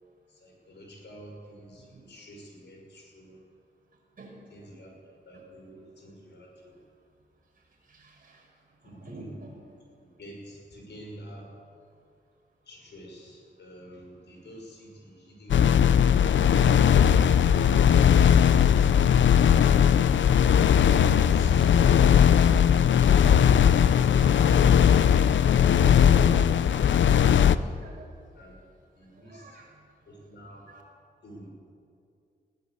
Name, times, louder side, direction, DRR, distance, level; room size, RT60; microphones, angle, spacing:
voice 1, 0.3-3.4 4.5-6.8 8.8-9.4 10.0-11.5 12.7-16.0 17.5-18.0 18.2-19.2 19.5-20.3 21.2-21.9 23.5-25.2 25.6-27.9 28.3-28.6 28.9-29.6 30.1-30.6 31.2-31.5, equal, 70° left, 0 dB, 6.0 m, -47 dB
voice 2, 4.2-4.8 5.3-5.4 7.9-8.5 8.8-9.5 21.3-21.6 27.7-28.1 29.2-29.7 30.7-30.8, right 3 dB, 50° right, 0 dB, 5.3 m, -51 dB
sound 1, 15.5-27.6, left 8 dB, 90° left, 0.6 m, -19 dB
20.5 x 16.0 x 8.1 m, 2.4 s
wide cardioid pair, 165°, 19 cm